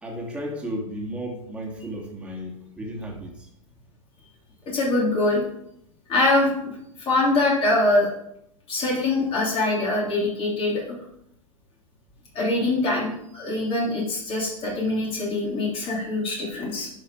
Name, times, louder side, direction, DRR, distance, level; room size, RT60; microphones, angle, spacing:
voice 1, 0.0-3.5, equal, 5° right, -1 dB, 2.4 m, -34 dB
voice 2, 4.7-5.4 6.1-8.1 8.7-10.8 12.3-16.9, left 2 dB, 30° left, -3 dB, 3.1 m, -23 dB
10.5 x 5.5 x 4.8 m, 0.77 s
hypercardioid pair, 105°, 18 cm